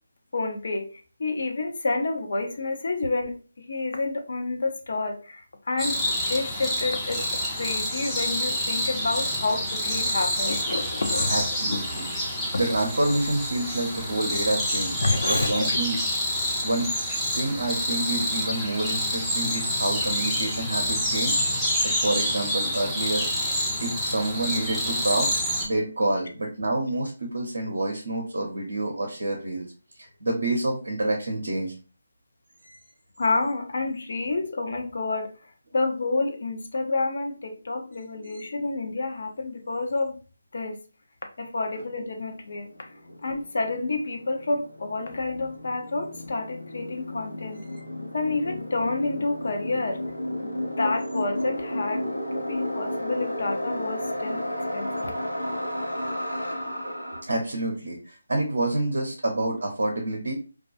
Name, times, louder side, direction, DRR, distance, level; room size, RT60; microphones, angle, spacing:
voice 1, 0.3-11.8 15.0-15.8 33.2-40.2 40.5-40.8 41.4-47.6 48.1-50.0 50.4-54.5 54.7-55.2, left 3 dB, 50° left, 4 dB, 0.5 m, -29 dB
sound 1, 5.8-25.7, equal, ahead, 0.5 m, -27 dB
voice 2, 11.3-12.1 12.5-15.0 15.3-16.0 16.6-16.9 17.3-25.3 25.6-29.7 30.0-31.7 32.6-32.7 38.2-38.4 50.6-50.8 52.1-52.3 54.5-54.6 55.6-55.7 56.8-60.3, right 2 dB, 60° right, 1 dB, 0.6 m, -28 dB
sound 2, 42.0-57.2, left 1 dB, 85° left, 0.8 m, -33 dB
2.3 x 2.2 x 2.5 m, 0.35 s
figure-of-eight pair, 150°, 0 cm